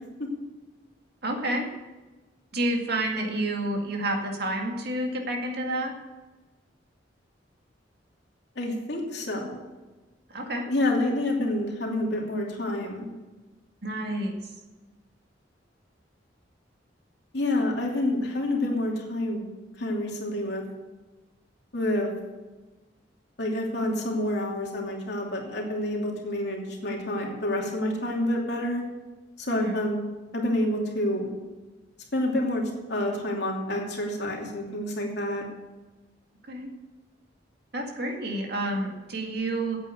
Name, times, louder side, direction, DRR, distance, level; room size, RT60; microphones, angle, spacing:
voice 1, 1.2-1.7 2.5-5.9 10.3-10.6 13.8-14.3 29.5-29.8 36.5-36.7 37.7-39.8, right 1 dB, 60° right, 2 dB, 2.1 m, -29 dB
voice 2, 8.6-9.6 10.7-13.1 17.3-19.4 19.8-20.6 21.7-22.1 23.4-28.8 29.4-30.0 30.3-31.3 32.1-32.6 32.9-35.4, left 1 dB, 65° left, -1 dB, 2.8 m, -28 dB
9.0 x 8.4 x 8.4 m, 1.2 s
head